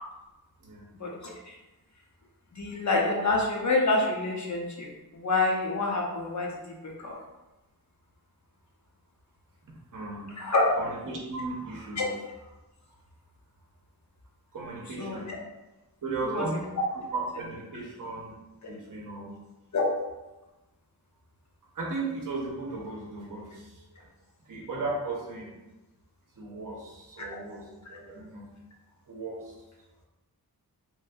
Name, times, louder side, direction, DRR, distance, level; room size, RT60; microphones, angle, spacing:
voice 1, 2.5-7.1 10.4-10.7 12.0-12.1 15.0-15.4 16.2-16.6 19.7-19.8, left 3 dB, 50° left, -1 dB, 0.6 m, -27 dB
voice 2, 9.6-10.3 10.8-12.2 14.5-15.4 16.0-16.6 17.1-18.4 18.7-19.4 21.7-23.9 24.5-25.6 26.4-28.5 29.1-29.6, right 3 dB, 60° right, -1 dB, 0.7 m, -36 dB
2.9 x 2.6 x 2.2 m, 1.0 s
wide cardioid pair, 115°, 37 cm